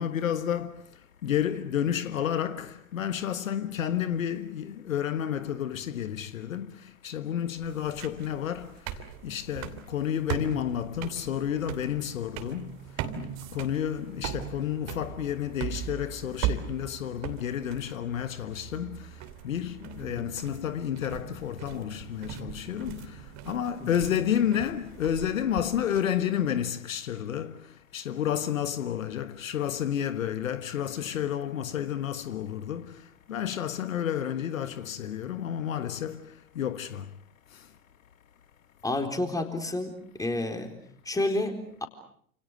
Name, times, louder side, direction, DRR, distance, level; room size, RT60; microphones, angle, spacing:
voice 1, 0.0-37.2 37.5-37.8, left 9 dB, 65° left, 1.5 m, -31 dB
sound 1, 7.6-26.0, right 10 dB, 40° right, 2.9 m, -39 dB
voice 2, 38.8-39.9 40.2-40.7 41.1-41.9, left 2 dB, 10° left, 4.2 m, -29 dB
29.5 x 27.5 x 6.4 m
figure-of-eight pair, 90°, 42 cm